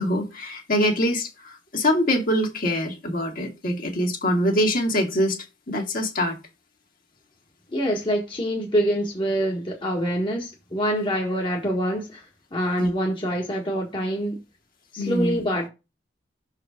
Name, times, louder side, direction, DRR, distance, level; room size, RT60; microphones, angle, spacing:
voice 1, 0.0-5.4 5.7-6.4 12.8-12.9 15.0-15.4, equal, 50° left, 2.2 m, -24 dB
voice 2, 7.7-12.2 12.5-14.4 14.9-15.7, equal, 30° left, 1.5 m, -25 dB
6.4 x 4.8 x 5.1 m
head